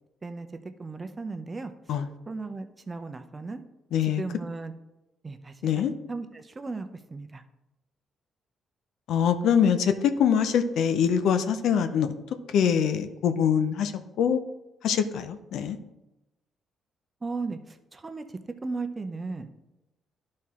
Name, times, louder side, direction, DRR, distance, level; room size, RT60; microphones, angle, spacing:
voice 1, 0.8-1.7 2.3-3.6 4.0-4.7 5.2-5.5 6.1-7.4 17.2-18.2 18.6-19.5, right 3 dB, 25° right, 8 dB, 0.7 m, -36 dB
voice 2, 3.9-4.2 5.6-5.9 9.1-12.1 12.5-13.9 14.2-14.4 14.8-15.8, left 8 dB, 75° left, 9 dB, 0.6 m, -24 dB
11.5 x 4.3 x 3.7 m, 0.96 s
cardioid pair, 90°, 0 cm